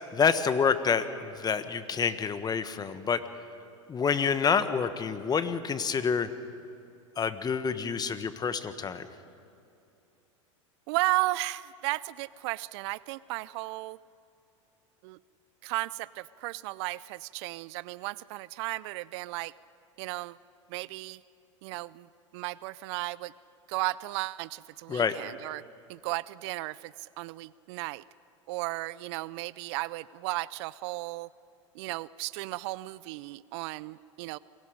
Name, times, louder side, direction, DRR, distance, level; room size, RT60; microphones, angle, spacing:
voice 1, 0.0-3.2 3.9-6.3 7.2-9.1 24.9-25.1, left 6 dB, 25° left, 11 dB, 1.4 m, -28 dB
voice 2, 10.9-14.0 15.0-15.2 15.6-19.5 20.0-20.4 20.7-21.2 21.6-22.1 22.3-23.3 23.7-25.6 25.9-28.0 28.5-31.3 31.7-34.4, right 20 dB, 60° right, 20 dB, 0.5 m, -34 dB
29.0 x 22.5 x 5.2 m, 2.7 s
hypercardioid pair, 95°, 17 cm